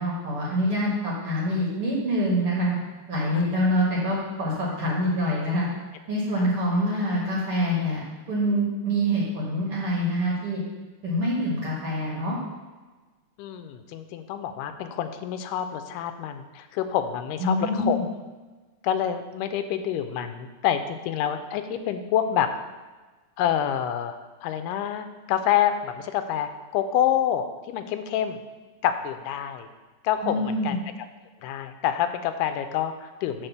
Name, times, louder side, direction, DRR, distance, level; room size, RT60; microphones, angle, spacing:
voice 1, 0.0-2.8 3.1-5.7 6.1-10.6 11.0-12.4 17.4-18.0 30.2-30.8, equal, 50° right, -4 dB, 1.9 m, -25 dB
voice 2, 13.4-18.0 18.8-22.5 23.4-24.2 24.4-28.4 28.8-29.7 30.0-30.8 31.4-33.5, left 10 dB, 85° left, 8 dB, 2.2 m, -27 dB
5.8 x 4.8 x 6.6 m, 1.3 s
omnidirectional pair, 3.7 m